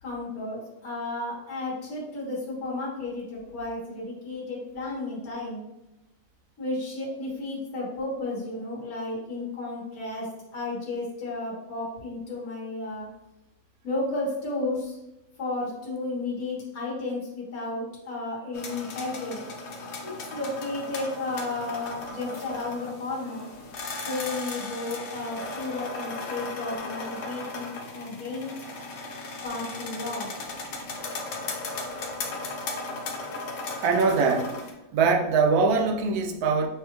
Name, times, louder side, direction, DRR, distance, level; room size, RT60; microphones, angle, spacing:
voice 1, 0.0-5.7 6.6-13.1 13.8-15.0 15.4-19.4 20.0-23.4 24.1-28.5 29.4-30.3, left 2 dB, 75° left, -5 dB, 1.8 m, -33 dB
sound 1, 18.5-34.7, left 3 dB, 60° left, 0.8 m, -36 dB
voice 2, 33.8-34.6 34.9-36.7, right 4 dB, 90° right, 3 dB, 1.1 m, -22 dB
6.2 x 2.3 x 3.0 m, 0.94 s
omnidirectional pair, 1.6 m